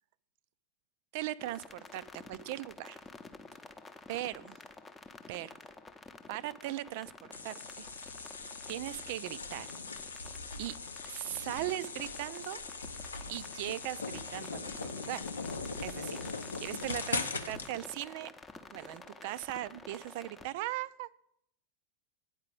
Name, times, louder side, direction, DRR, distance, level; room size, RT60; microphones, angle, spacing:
voice 1, 1.1-3.0 4.1-4.6 5.3-5.6 6.3-7.9 8.7-9.7 10.2-10.7 11.1-12.6 13.3-15.3 15.8-18.3 18.7-21.2, right 15 dB, 50° right, 16 dB, 0.3 m, -39 dB
sound 1, 1.4-20.5, left 3 dB, 15° left, 0.7 m, -51 dB
sound 2, 7.3-17.7, left 4 dB, 75° left, 0.6 m, -40 dB
8.8 x 4.8 x 7.6 m, 0.74 s
figure-of-eight pair, 90°, 0 cm